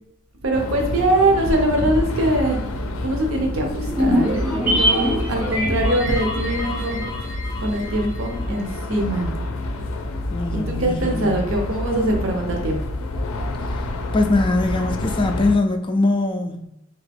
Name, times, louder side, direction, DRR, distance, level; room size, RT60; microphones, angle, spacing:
voice 1, 0.4-2.6 3.0-7.0 7.6-9.3 10.5-12.8, right 1 dB, 80° right, 2 dB, 0.7 m, -22 dB
sound 1, 0.5-15.5, left 2 dB, 90° left, 0.4 m, -28 dB
sound 2, 3.9-8.4 8.7-8.8, equal, 10° right, 1.0 m, -24 dB
voice 2, 10.3-11.5 14.1-16.6, left 2 dB, 25° left, 5 dB, 0.4 m, -21 dB
3.5 x 2.9 x 3.4 m, 0.79 s
head